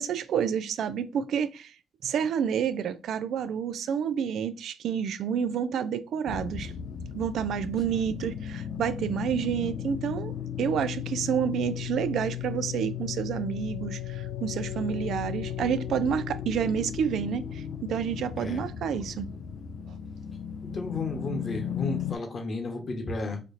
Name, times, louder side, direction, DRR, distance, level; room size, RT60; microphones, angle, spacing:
voice 1, 0.0-1.7 2.0-6.7 7.1-19.3, right 8 dB, 75° right, 0.4 m, -29 dB
sound 1, 6.3-22.2, left 9 dB, 75° left, 0.4 m, -35 dB
voice 2, 20.6-23.4, left 2 dB, 50° left, 1.1 m, -33 dB
4.4 x 2.5 x 2.6 m
supercardioid pair, 60°, 0 cm